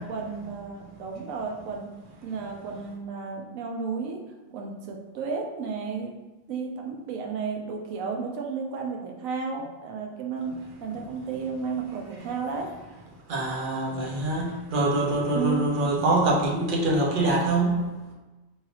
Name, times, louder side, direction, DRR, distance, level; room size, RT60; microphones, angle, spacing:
voice 1, 0.0-1.9 2.2-4.2 4.5-6.1 6.5-10.5 10.8-12.7 15.3-15.7, right 5 dB, 80° right, 1 dB, 1.0 m, -33 dB
voice 2, 13.3-17.8, right 2 dB, 50° right, -2 dB, 0.7 m, -24 dB
3.2 x 2.7 x 2.8 m, 1.1 s
omnidirectional pair, 1.4 m